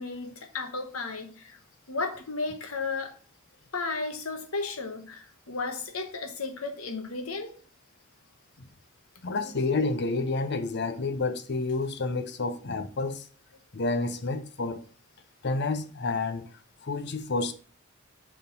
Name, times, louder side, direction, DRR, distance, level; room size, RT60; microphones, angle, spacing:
voice 1, 0.0-1.6 1.9-3.2 3.7-7.5 9.4-9.5, left 3 dB, 90° left, 1.2 m, -34 dB
voice 2, 9.2-13.2 13.7-14.8 15.4-16.5 16.8-17.5, left 3 dB, 55° left, 0.7 m, -29 dB
6.6 x 3.8 x 5.3 m
head